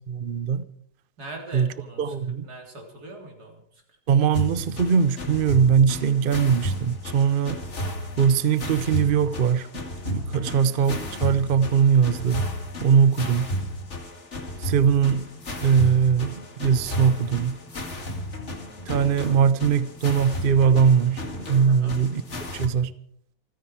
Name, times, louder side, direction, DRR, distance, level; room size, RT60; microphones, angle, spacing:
voice 1, 0.1-0.6 1.5-1.7 2.0-2.5 4.1-7.6 8.2-9.7 10.0-12.5 12.8-13.5 14.6-15.3 15.6-17.6 18.9-21.2 21.5-22.2 22.5-22.9, right 7 dB, 45° right, 0.8 m, -21 dB
voice 2, 1.2-2.1 2.4-4.0 10.3-10.7 12.9-13.2 18.0-18.2 21.7-22.0, right 2 dB, 80° right, 4.1 m, -42 dB
sound 1, 4.3-22.7, equal, 45° left, 2.5 m, -33 dB
27.5 x 10.0 x 4.8 m
omnidirectional pair, 1.7 m